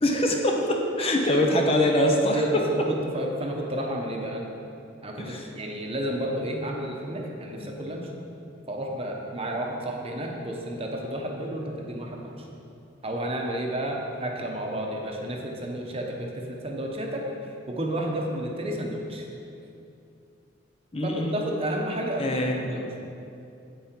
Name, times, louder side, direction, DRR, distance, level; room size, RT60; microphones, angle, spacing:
voice 1, 0.0-2.7 5.2-5.5 20.9-21.3 22.2-22.8, left 1 dB, 30° left, 1 dB, 0.8 m, -23 dB
voice 2, 2.9-4.4 5.0-8.1 8.7-12.4 13.0-17.2 17.7-19.3 21.0-22.3 22.7-22.9, right 1 dB, 30° right, 0 dB, 1.0 m, -31 dB
8.8 x 8.6 x 4.5 m, 2.7 s
head